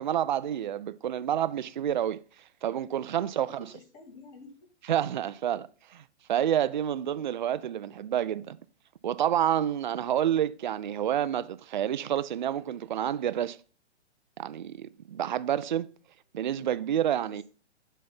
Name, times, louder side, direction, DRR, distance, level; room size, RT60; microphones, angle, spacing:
voice 1, 0.0-2.2 2.6-3.7 4.9-6.0 6.3-8.6 9.0-13.6 14.4-15.9 16.3-17.4, right 10 dB, 45° right, 0.4 m, -29 dB
voice 2, 3.2-4.5 5.5-5.7 16.9-17.4, left 3 dB, 35° left, 2.6 m, -51 dB
6.8 x 4.2 x 5.8 m
figure-of-eight pair, 120°, 35 cm